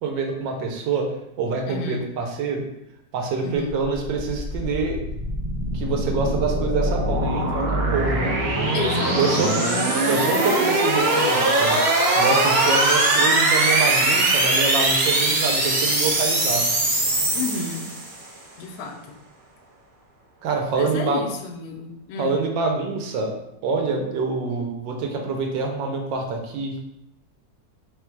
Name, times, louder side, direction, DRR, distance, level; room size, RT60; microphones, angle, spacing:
voice 1, 0.0-1.1 1.4-2.7 3.1-5.0 5.7-8.4 9.2-9.5 10.1-11.8 12.1-16.6 20.4-21.2 22.2-23.3 23.6-26.7, right 4 dB, 85° right, 1 dB, 1.5 m, -26 dB
voice 2, 1.7-2.0 3.4-3.7 8.7-9.8 17.3-17.9 18.6-19.0 20.8-22.3, left 3 dB, 70° left, 1 dB, 1.0 m, -31 dB
sound 1, 4.2-18.2, right 2 dB, 65° right, 0.4 m, -21 dB
4.0 x 2.3 x 4.5 m, 0.83 s
omnidirectional pair, 1.9 m